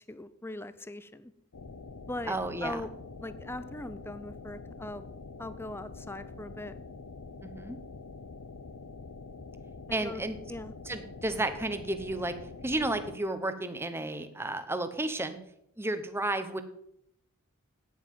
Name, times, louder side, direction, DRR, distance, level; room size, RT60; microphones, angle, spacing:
voice 1, 0.1-1.3 2.1-2.9 3.2-5.0 5.4-6.8 9.9-10.2 10.5-10.7, left 2 dB, 10° left, 13 dB, 0.6 m, -40 dB
sound 1, 1.5-13.2, left 4 dB, 80° left, 0.8 m, -45 dB
voice 2, 2.3-2.8 7.4-7.8 9.9-10.4 10.9-12.3 12.6-15.4 15.8-16.6, right 2 dB, 10° right, 9 dB, 0.9 m, -32 dB
9.6 x 9.3 x 7.7 m, 0.74 s
head